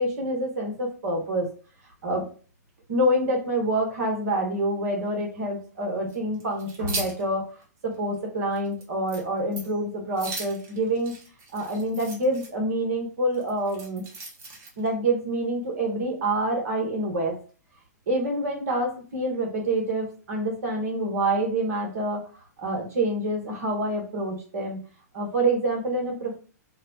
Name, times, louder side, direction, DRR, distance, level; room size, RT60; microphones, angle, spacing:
voice 1, 0.0-1.5 2.0-2.2 2.9-7.4 7.8-11.1 11.5-14.0 14.8-17.4 18.1-22.2 22.6-24.8 25.1-26.4, right 1 dB, 60° right, 0 dB, 1.1 m, -27 dB
sound 1, 6.1-7.2 7.6-7.7 8.1-8.2 8.5-8.8 9.1-9.2 9.5-9.8 10.1-12.5 13.3-14.9, right 3 dB, 30° right, 1.0 m, -37 dB
2.6 x 2.1 x 2.7 m, 0.38 s
hypercardioid pair, 115°, 9 cm